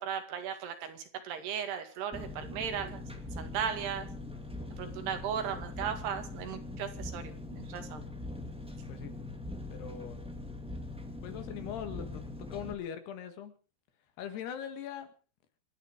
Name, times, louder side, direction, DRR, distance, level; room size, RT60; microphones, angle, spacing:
voice 1, 0.0-3.0 3.4-4.1 4.8-8.0, right 8 dB, 80° right, 7 dB, 4.2 m, -36 dB
Engine, 2.1-12.7, left 2 dB, 5° right, 1.2 m, -42 dB
voice 2, 4.6-4.9 8.9-9.2 9.7-10.3 11.2-13.6 14.2-15.1, left 9 dB, 80° left, 10 dB, 3.9 m, -41 dB
27.0 x 9.6 x 5.1 m, 0.38 s
omnidirectional pair, 4.6 m